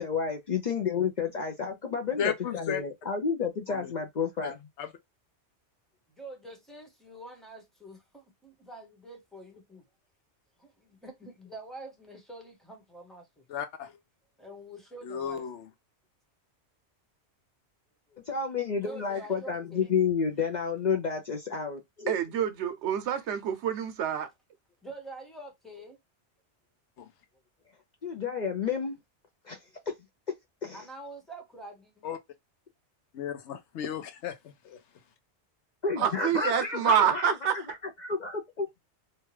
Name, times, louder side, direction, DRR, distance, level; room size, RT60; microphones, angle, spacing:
voice 1, 0.0-4.7 18.3-22.2 28.0-29.0 29.4-29.6 29.9-30.0 30.3-30.4 30.6-30.8 35.8-37.3 38.0-38.7, left 5 dB, 50° left, 0.6 m, -30 dB
voice 2, 2.2-2.8 3.8-3.9 4.4-4.9 13.5-13.9 15.0-15.6 27.0-27.1 32.0-32.2 33.1-34.4 34.6-34.8, left 8 dB, 75° left, 0.9 m, -34 dB
voice 3, 6.1-9.8 10.6-13.4 14.4-15.5 18.1-18.2 18.8-19.9 24.8-26.0 29.6-29.7 30.7-32.1, right 1 dB, ahead, 0.8 m, -46 dB
voice 4, 22.1-24.3 36.0-37.7, right 8 dB, 75° right, 0.9 m, -27 dB
2.8 x 2.3 x 3.1 m
omnidirectional pair, 1.2 m